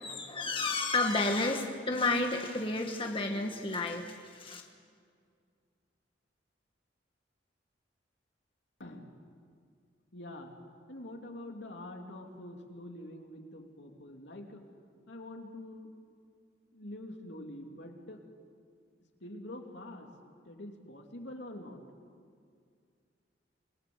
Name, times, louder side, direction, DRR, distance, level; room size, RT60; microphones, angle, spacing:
voice 1, 0.0-4.6, left 2 dB, 30° left, 3 dB, 1.4 m, -31 dB
voice 2, 8.8-9.1 10.1-10.5 10.9-14.6 15.1-15.9 16.7-18.2 19.2-20.1 20.4-21.8, left 1 dB, 75° left, 2 dB, 3.1 m, -45 dB
27.5 x 20.5 x 8.0 m, 2.2 s
head